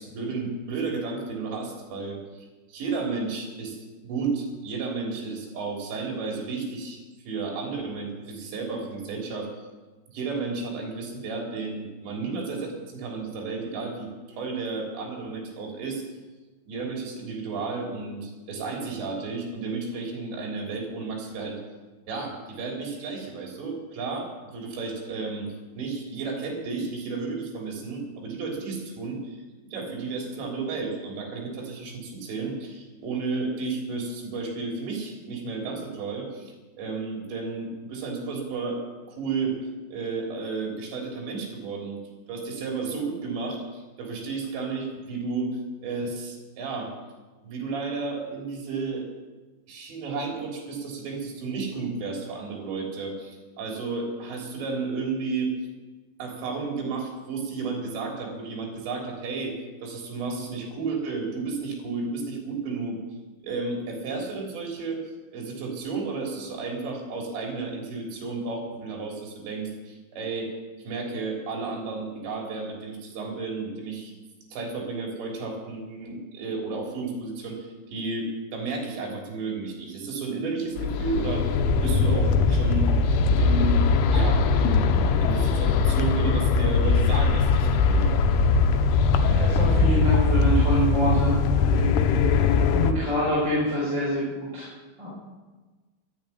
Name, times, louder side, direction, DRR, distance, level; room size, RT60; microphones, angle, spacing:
voice 1, 0.0-3.8 4.0-7.0 7.3-9.5 10.1-16.0 16.7-21.6 22.1-25.5 25.8-29.4 29.7-38.8 39.1-39.6 39.9-42.0 42.3-46.9 47.4-49.1 49.7-55.5 56.2-59.5 59.8-63.0 63.4-65.0 65.3-70.5 70.8-74.1 74.5-81.6 81.8-83.8 84.1-88.2, right 4 dB, 65° right, 0 dB, 5.6 m, -32 dB
sound 1, 80.8-92.9, left 4 dB, 85° left, 3.4 m, -21 dB
voice 2, 89.2-91.4 91.7-94.7 95.0-95.1, right 1 dB, 20° right, -8 dB, 5.6 m, -27 dB
12.5 x 12.0 x 9.5 m, 1.3 s
omnidirectional pair, 5.5 m